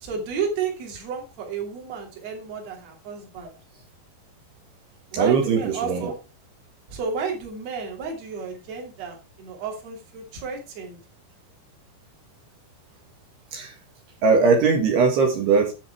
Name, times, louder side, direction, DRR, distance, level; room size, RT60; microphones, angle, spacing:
voice 1, 0.0-3.5 5.1-6.1 6.9-11.0, right 5 dB, 40° right, 1 dB, 3.3 m, -32 dB
voice 2, 5.1-6.1 13.5-13.7 14.2-15.7, right 5 dB, 70° right, 1 dB, 3.6 m, -20 dB
9.9 x 7.1 x 4.6 m, 0.29 s
omnidirectional pair, 5.1 m